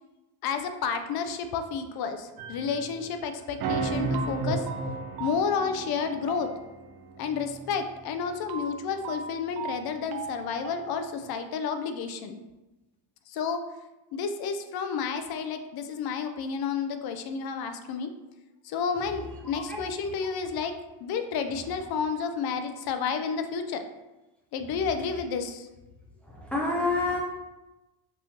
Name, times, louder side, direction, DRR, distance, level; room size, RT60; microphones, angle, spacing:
voice 1, 0.4-4.6 5.2-6.5 7.2-12.4 13.3-13.6 14.1-18.1 18.6-23.8 24.5-25.7, left 6 dB, 55° left, 8 dB, 0.5 m, -31 dB
sound 1, 2.4-3.1 3.6-11.1, right 4 dB, 55° right, 0.5 m, -34 dB
voice 2, 26.3-27.2, left 3 dB, 5° left, -4 dB, 0.5 m, -27 dB
5.3 x 3.1 x 2.7 m, 1.0 s
cardioid pair, 155°, 46 cm